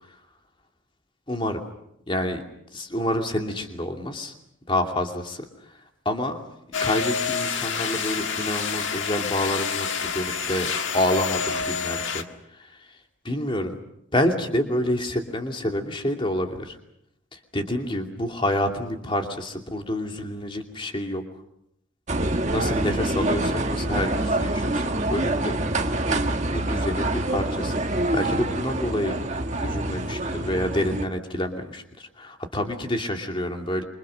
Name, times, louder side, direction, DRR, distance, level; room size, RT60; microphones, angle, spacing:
voice 1, 1.3-1.6 2.1-2.4 2.7-4.3 4.7-5.4 6.0-6.4 6.8-12.3 12.5-12.7 13.2-13.8 14.1-16.8 17.3-21.2 22.5-24.8 25.1-25.6 26.1-26.2 26.5-29.2 29.6-33.8, left 1 dB, 25° left, 4 dB, 2.7 m, -28 dB
sound 1, 6.7-12.2, left 6 dB, 65° left, 1.8 m, -28 dB
sound 2, 22.1-31.1, right 1 dB, 35° right, 1.6 m, -26 dB
27.5 x 25.0 x 6.5 m, 0.79 s
head